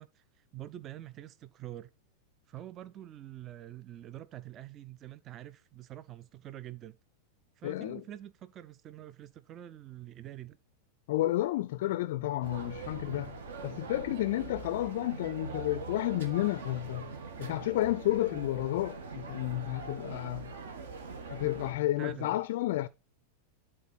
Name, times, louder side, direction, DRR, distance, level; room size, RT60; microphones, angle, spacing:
voice 1, 0.0-1.9 2.5-7.0 7.6-10.6 22.0-22.4, right 12 dB, 30° right, 0.5 m, -46 dB
voice 2, 7.6-8.0 11.1-13.4 13.6-17.1 17.4-20.5 21.3-22.9, left 15 dB, 55° left, 0.4 m, -31 dB
sound 1, 12.4-21.7, right 4 dB, 60° right, 1.8 m, -42 dB
11.5 x 4.4 x 4.2 m
figure-of-eight pair, 90°, 0 cm